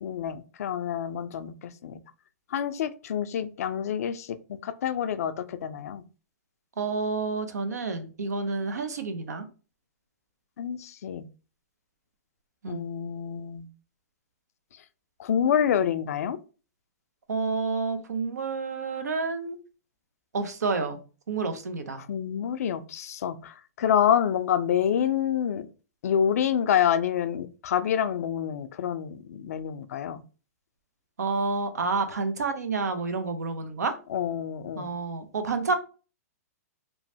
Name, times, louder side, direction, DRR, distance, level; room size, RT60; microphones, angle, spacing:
voice 1, 0.0-2.0 2.5-4.3 4.6-6.0 10.6-11.2 12.7-13.7 15.2-16.4 22.1-25.7 26.0-30.2 34.1-34.9, left 9 dB, 65° left, 0.4 m, -27 dB
voice 2, 6.8-9.5 12.6-12.8 17.3-19.6 20.3-21.0 21.3-22.0 31.2-34.0 34.7-35.7, right 4 dB, 85° right, 0.6 m, -29 dB
3.0 x 2.1 x 2.7 m
hypercardioid pair, 130°, 9 cm